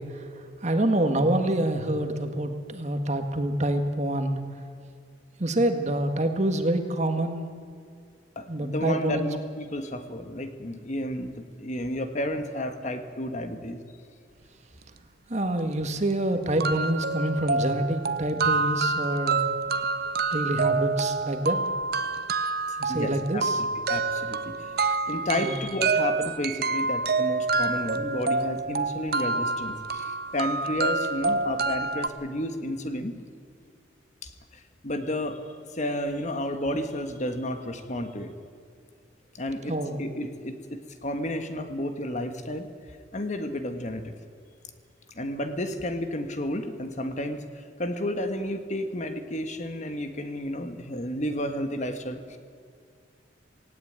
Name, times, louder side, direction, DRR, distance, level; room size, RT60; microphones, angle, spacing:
voice 1, 0.0-4.4 5.4-7.5 8.5-9.2 15.3-19.4 20.3-21.6 22.8-23.6 25.4-25.6 39.7-40.1, right 1 dB, 40° right, 6 dB, 1.8 m, -27 dB
voice 2, 8.3-13.8 22.7-23.4 23.9-24.8 25.1-33.2 34.2-35.4 35.7-38.3 39.3-42.7 43.1-44.1 45.1-52.4, left 1 dB, 40° left, 7 dB, 1.5 m, -32 dB
sound 1, 15.6-15.7 16.1-16.2 16.6-32.1, right 4 dB, 55° right, 0.8 m, -27 dB
18.5 x 17.0 x 8.9 m, 2.3 s
head